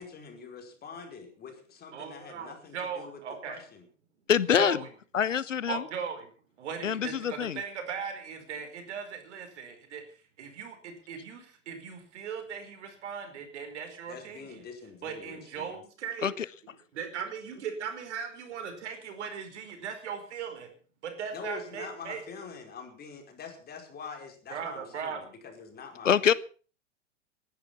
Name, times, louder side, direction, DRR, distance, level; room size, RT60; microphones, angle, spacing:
voice 1, 0.0-3.2 3.5-3.9 14.1-15.8 21.3-26.3, left 5 dB, 25° left, 4 dB, 5.1 m, -45 dB
voice 2, 1.9-3.6 4.5-4.9 5.7-6.3 6.6-10.0 10.4-14.6 15.0-16.3 16.9-20.7 21.0-22.2 24.5-25.2, right 7 dB, 65° right, 6 dB, 4.9 m, -38 dB
voice 3, 4.3-4.8 5.1-5.8 6.8-7.6 16.2-16.5 26.0-26.3, left 8 dB, 85° left, 21 dB, 0.8 m, -25 dB
19.0 x 11.0 x 5.8 m, 0.39 s
hypercardioid pair, 100°, 37 cm